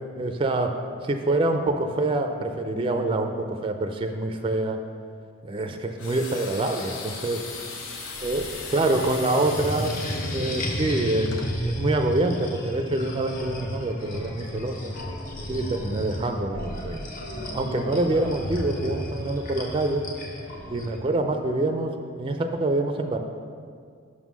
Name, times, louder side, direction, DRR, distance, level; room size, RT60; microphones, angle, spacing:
voice 1, 0.2-0.8 1.1-4.8 5.4-7.4 8.2-9.9 10.3-11.3 11.6-14.9 15.5-17.0 17.5-20.0 20.7-23.2, right 2 dB, 25° right, 5 dB, 0.3 m, -26 dB
sound 1, 6.0-11.5, left 4 dB, 85° left, 0.7 m, -38 dB
sound 2, 7.3-21.0, equal, 45° left, 0.7 m, -34 dB
sound 3, 12.5-18.9, equal, 70° left, 1.2 m, -40 dB
6.3 x 3.7 x 6.1 m, 2.1 s
head